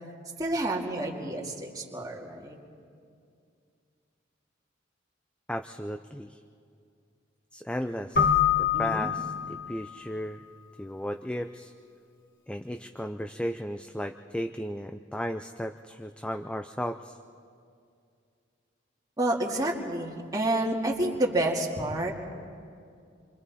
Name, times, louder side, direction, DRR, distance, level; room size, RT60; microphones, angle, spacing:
voice 1, 0.4-2.6 8.7-9.1 19.2-22.1, right 1 dB, 20° right, -2 dB, 2.2 m, -29 dB
voice 2, 5.5-6.4 7.5-10.4 10.8-11.7 12.5-17.2, equal, 5° left, 7 dB, 0.5 m, -35 dB
Keyboard (musical), 8.2-10.0, left 8 dB, 50° left, 1.4 m, -25 dB
29.0 x 24.5 x 4.2 m, 2.4 s
head